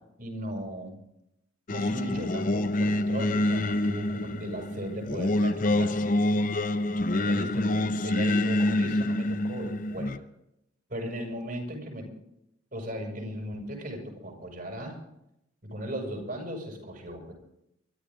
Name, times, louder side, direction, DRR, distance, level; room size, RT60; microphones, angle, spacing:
voice 1, 0.2-1.0 1.7-6.0 7.1-10.1 10.9-12.1 12.7-15.0 15.6-17.3, equal, 50° right, 1 dB, 6.6 m, -37 dB
Singing, 1.7-10.2, left 1 dB, 40° left, 0.7 m, -27 dB
24.5 x 14.0 x 3.8 m, 0.81 s
head